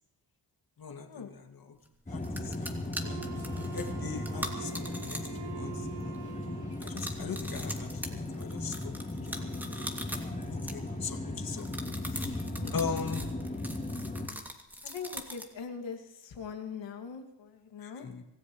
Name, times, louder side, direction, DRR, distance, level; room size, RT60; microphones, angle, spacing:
voice 1, 0.8-1.8 2.1-3.2 3.6-6.2 6.8-8.9 9.2-9.8 10.2-11.7 12.0-13.2 17.8-18.2, left 5 dB, 55° left, 3 dB, 2.4 m, -40 dB
sound 1, 1.9-2.0 2.2-5.5 5.7-6.2 6.7-11.2 11.6-15.6, equal, 5° right, 2.5 m, -41 dB
sound 2, 2.1-14.3, left 2 dB, 15° left, 3.4 m, -37 dB
Wind instrument woodwind instrument, 3.0-7.2, right 11 dB, 65° right, 1.7 m, -45 dB
voice 2, 14.8-18.1, left 6 dB, 85° left, 4 dB, 2.3 m, -41 dB
26.0 x 15.0 x 3.2 m, 0.93 s
cardioid pair, 85°, 44 cm